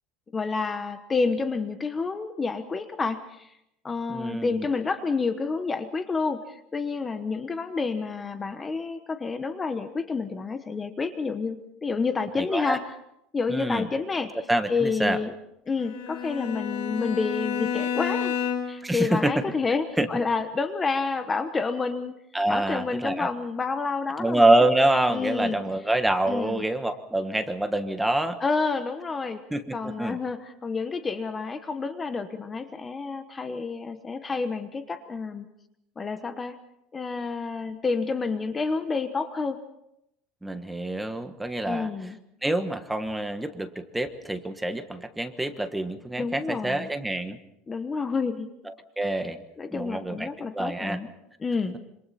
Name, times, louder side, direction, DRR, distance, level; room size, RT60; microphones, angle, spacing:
voice 1, 0.3-3.5 3.8-12.8 13.3-14.4 14.7-15.3 15.7-18.3 18.6-22.2 22.5-24.5 25.1-25.6 26.3-26.6 28.4-29.4 29.7-35.5 36.0-36.6 36.9-39.6 41.6-42.2 46.2-46.9 47.7-48.5 49.6-51.1 51.4-51.8, left 4 dB, 15° left, 9 dB, 1.1 m, -29 dB
voice 2, 4.1-4.7 12.4-12.8 13.5-13.9 14.5-15.2 18.8-19.4 20.0-20.1 22.3-23.3 24.2-28.4 29.5-30.2 40.4-41.9 42.4-47.4 48.7-49.4 49.7-50.3 50.5-51.0, right 1 dB, 5° right, 8 dB, 1.3 m, -26 dB
Bowed string instrument, 15.8-18.9, left 8 dB, 85° left, 7.3 m, -30 dB
27.0 x 26.0 x 4.3 m, 0.80 s
cardioid pair, 150°, 0 cm